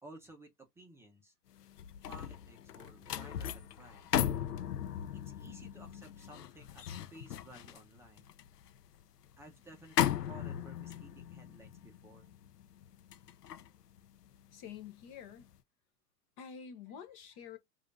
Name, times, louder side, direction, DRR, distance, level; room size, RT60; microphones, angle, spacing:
voice 1, 0.0-1.3 2.1-4.2 5.2-8.3 9.4-12.3, right 2 dB, 5° right, 0.7 m, -55 dB
sound 1, 1.6-14.9 15.3-15.5, left 10 dB, 90° left, 0.7 m, -38 dB
voice 2, 14.5-15.5 16.4-17.6, left 7 dB, 30° left, 0.8 m, -48 dB
4.9 x 2.7 x 2.5 m
hypercardioid pair, 135°, 46 cm